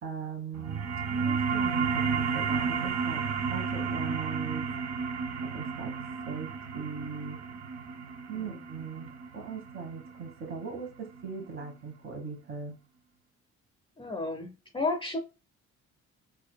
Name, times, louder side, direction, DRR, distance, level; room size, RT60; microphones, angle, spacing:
voice 1, 0.0-3.2 3.5-4.7 5.4-6.0 6.2-7.4 8.3-12.8, right 6 dB, 40° right, 1.3 m, -39 dB
sound 1, 0.5-11.6, right 5 dB, 60° right, 0.6 m, -32 dB
voice 2, 14.0-15.2, left 3 dB, 15° left, 0.7 m, -33 dB
4.3 x 2.7 x 2.2 m
cardioid pair, 90°, 30 cm